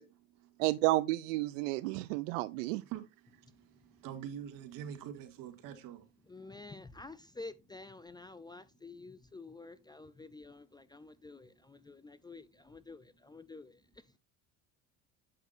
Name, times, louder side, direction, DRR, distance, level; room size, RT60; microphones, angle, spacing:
voice 1, 0.6-2.8, right 19 dB, 85° right, 0.6 m, -31 dB
voice 2, 4.0-6.1, right 9 dB, 60° right, 2.1 m, -43 dB
voice 3, 6.3-13.8, left 3 dB, 10° left, 0.4 m, -50 dB
8.6 x 6.8 x 2.6 m
supercardioid pair, 105°, 37 cm